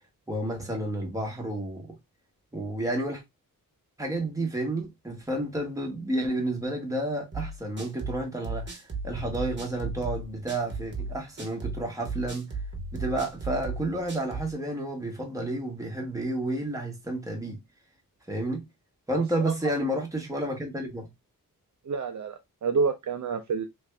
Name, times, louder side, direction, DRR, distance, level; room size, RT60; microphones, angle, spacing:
voice 1, 0.3-2.0 2.5-3.2 4.0-12.5 12.9-17.6 18.3-18.6 19.1-21.1, right 1 dB, 10° right, 1.1 m, -31 dB
sound 1, 7.3-14.5, right 3 dB, 30° right, 1.1 m, -35 dB
voice 2, 19.1-19.7 21.8-23.6, right 5 dB, 55° right, 0.6 m, -29 dB
3.2 x 2.6 x 3.3 m
wide cardioid pair, 135°, 35 cm